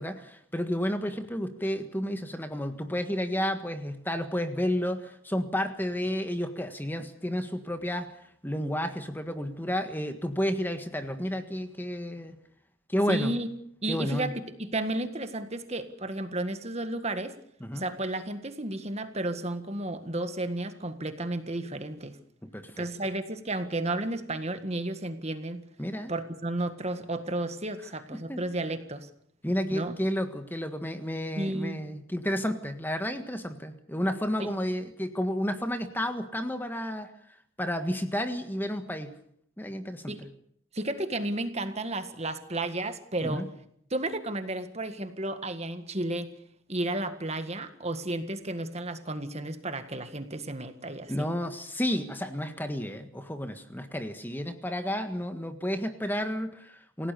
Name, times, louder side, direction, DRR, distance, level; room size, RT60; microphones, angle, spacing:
voice 1, 0.0-8.2 8.4-12.3 12.9-13.3 13.9-14.3 17.6-17.9 22.5-22.8 25.8-26.1 28.3-28.4 29.4-37.1 37.6-39.1 39.6-40.3 43.2-43.5 51.1-57.1, equal, 10° left, 8 dB, 1.6 m, -31 dB
voice 2, 13.1-13.5 13.8-17.3 17.7-22.2 22.8-25.6 26.1-29.1 29.7-30.0 31.4-31.8 34.4-34.5 40.1-40.2 40.7-43.5 43.9-46.3 46.7-51.3, right 2 dB, 30° right, 9 dB, 1.8 m, -32 dB
28.0 x 17.0 x 6.9 m, 0.68 s
head